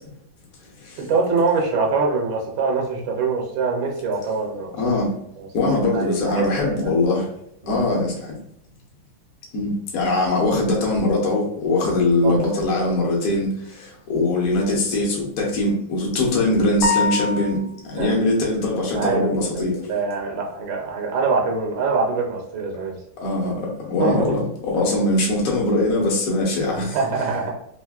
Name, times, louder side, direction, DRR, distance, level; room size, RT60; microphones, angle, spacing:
voice 1, 1.0-4.7 5.4-6.9 12.2-12.7 18.0-18.2 18.9-23.0 24.0-24.4 26.7-27.5, right 4 dB, 75° right, 0 dB, 1.4 m, -24 dB
voice 2, 4.8-5.1 5.5-7.3 7.6-8.4 9.5-19.8 23.2-27.0, left 2 dB, 55° left, -3 dB, 0.9 m, -22 dB
sound 1, 16.8-17.9, left 3 dB, 80° left, 1.4 m, -23 dB
3.4 x 2.5 x 2.3 m, 0.74 s
omnidirectional pair, 2.4 m